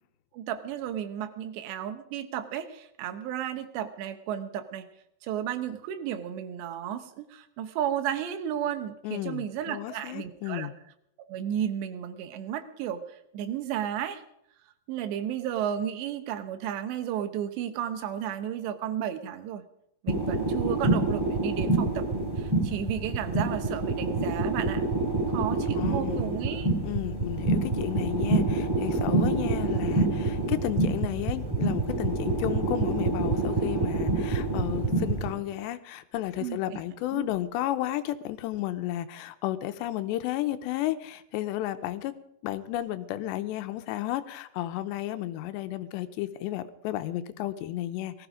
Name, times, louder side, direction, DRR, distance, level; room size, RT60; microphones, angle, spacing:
voice 1, 0.3-4.9 5.2-10.7 11.2-13.0 13.3-14.2 14.9-19.6 20.0-22.1 22.4-24.8 25.3-26.7 36.4-36.8 37.1-37.3, right 10 dB, 85° right, 9 dB, 3.3 m, -33 dB
voice 2, 9.0-10.7 25.8-26.3 26.8-42.1 42.4-48.3, left 14 dB, 85° left, 11 dB, 3.0 m, -33 dB
sound 1, 20.1-35.3, right 2 dB, 5° right, 3.1 m, -27 dB
19.0 x 14.5 x 5.0 m, 0.75 s
omnidirectional pair, 4.9 m